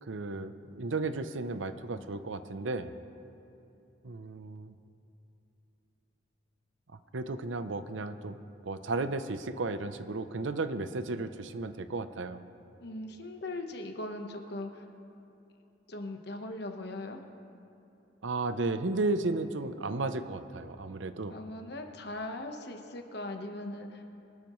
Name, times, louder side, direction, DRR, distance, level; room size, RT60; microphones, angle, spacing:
voice 1, 0.0-2.9 4.0-4.7 7.1-8.4 8.6-12.4 18.2-21.4, right 3 dB, 80° right, 10 dB, 0.7 m, -34 dB
voice 2, 12.8-14.9 15.9-17.2 21.3-24.0, left 2 dB, 60° left, 4 dB, 1.2 m, -39 dB
24.0 x 12.5 x 3.1 m, 2.9 s
head